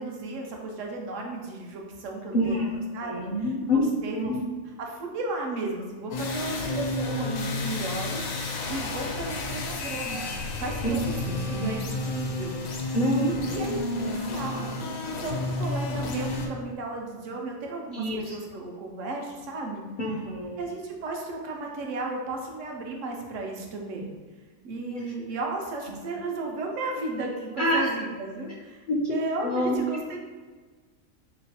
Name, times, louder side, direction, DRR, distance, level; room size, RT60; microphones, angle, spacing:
voice 1, 0.0-4.3 4.8-11.1 11.4-14.7 15.2-19.8 20.6-24.1 24.6-30.2, right 2 dB, 70° right, 1 dB, 1.0 m, -34 dB
voice 2, 2.3-2.7 3.0-3.9 4.2-4.4 10.8-11.7 12.9-13.2 17.9-18.3 20.0-20.6 24.9-25.0 25.9-26.0 27.6-27.9 28.9-29.0 29.4-29.8, left 1 dB, 55° left, -4 dB, 0.5 m, -27 dB
sound 1, 6.1-16.5, left 2 dB, 85° left, 1.0 m, -31 dB
3.8 x 3.0 x 2.8 m, 1.4 s
omnidirectional pair, 1.4 m